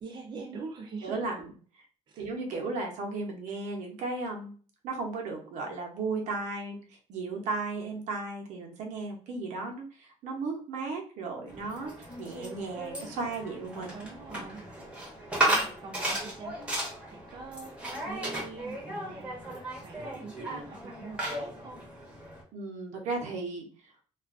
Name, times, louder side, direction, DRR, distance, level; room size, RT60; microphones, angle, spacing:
voice 1, 0.0-1.3 2.1-2.3 13.9-14.7 15.4-16.7 17.1-19.4 19.8-21.8, right 4 dB, 35° right, 2 dB, 0.4 m, -44 dB
voice 2, 1.0-1.5 2.2-4.5 4.8-6.8 7.1-14.0 22.5-23.7, right 3 dB, 80° right, 1 dB, 0.7 m, -35 dB
sound 1, 11.5-22.4, right 1 dB, 10° right, 0.8 m, -35 dB
2.4 x 2.2 x 2.4 m, 0.40 s
cardioid pair, 145°, 12 cm